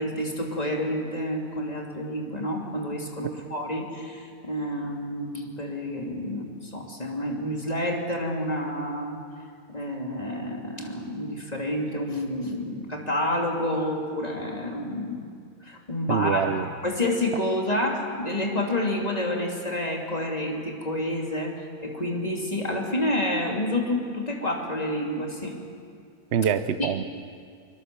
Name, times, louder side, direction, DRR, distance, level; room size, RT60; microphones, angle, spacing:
voice 1, 0.0-9.2 9.7-15.3 15.6-16.5 16.8-21.5 21.8-25.5 26.8-26.9, left 1 dB, 30° left, 0 dB, 2.9 m, -29 dB
voice 2, 16.1-16.7 26.3-27.0, right 7 dB, 55° right, 11 dB, 0.9 m, -24 dB
24.5 x 22.0 x 6.9 m, 2.3 s
omnidirectional pair, 1.5 m